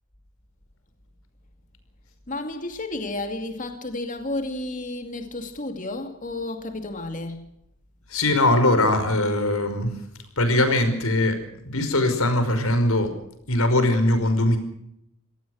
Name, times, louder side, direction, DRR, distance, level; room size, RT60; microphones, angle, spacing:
voice 1, 2.3-7.4, left 2 dB, 35° left, 2.5 m, -32 dB
voice 2, 8.1-9.9 10.4-11.4 11.7-13.1 13.5-14.6, left 1 dB, 80° left, 5.3 m, -21 dB
26.0 x 18.5 x 6.5 m
head